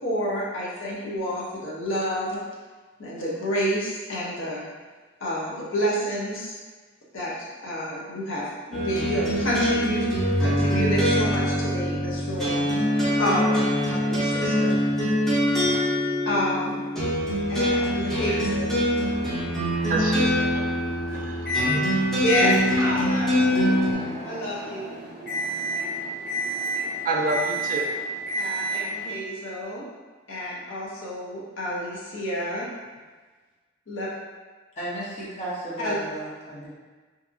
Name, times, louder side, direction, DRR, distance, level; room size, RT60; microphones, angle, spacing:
voice 1, 0.0-2.4 3.0-4.6 5.2-6.5 7.1-10.1 10.4-12.6 13.1-14.8 15.3-15.8 16.2-16.8 17.5-18.7 21.6-21.8 22.2-23.5 24.2-24.9 28.4-29.9 30.3-32.7 33.9-34.1 35.8-35.9, equal, 70° left, -6 dB, 0.7 m, -29 dB
sound 1, 8.7-23.9, equal, 5° left, 0.6 m, -24 dB
voice 2, 19.0-22.2 23.6-28.3, right 2 dB, 45° right, 1 dB, 0.3 m, -33 dB
Microwave oven, 21.5-21.7 22.3-29.1, equal, 50° left, 1.1 m, -30 dB
voice 3, 34.8-36.7, right 1 dB, 35° left, -8 dB, 0.7 m, -34 dB
2.7 x 2.5 x 2.5 m, 1.3 s
head